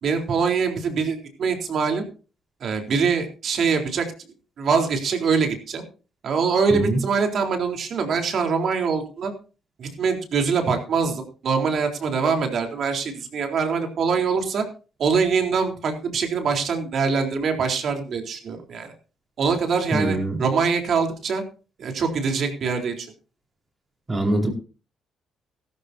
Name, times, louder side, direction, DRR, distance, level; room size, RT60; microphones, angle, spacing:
voice 1, 0.0-2.1 2.6-4.1 4.6-5.8 6.2-9.3 9.8-14.7 15.0-18.9 19.4-21.4 21.8-23.1, right 5 dB, 60° right, 4 dB, 3.8 m, -23 dB
voice 2, 19.9-20.4 24.1-24.5, right 1 dB, 25° right, 3 dB, 4.6 m, -23 dB
16.0 x 14.0 x 2.8 m, 0.35 s
cardioid pair, 90°, 0 cm